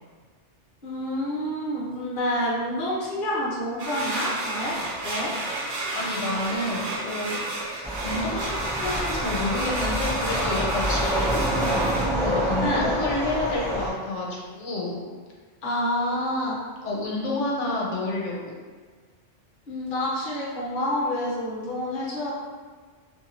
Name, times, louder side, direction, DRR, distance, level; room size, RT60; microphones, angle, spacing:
voice 1, 0.8-5.3 12.6-12.9 15.6-16.6 19.7-22.3, left 1 dB, 50° left, -7 dB, 0.9 m, -28 dB
sound 1, 3.8-12.1, right 2 dB, 85° right, 1.0 m, -31 dB
voice 2, 5.9-7.4 7.6-11.8 12.2-15.0 16.8-18.5, left 2 dB, 80° left, -3 dB, 1.0 m, -29 dB
sound 2, 7.8-13.9, equal, ahead, 0.5 m, -27 dB
2.6 x 2.6 x 2.8 m, 1.5 s
omnidirectional pair, 1.2 m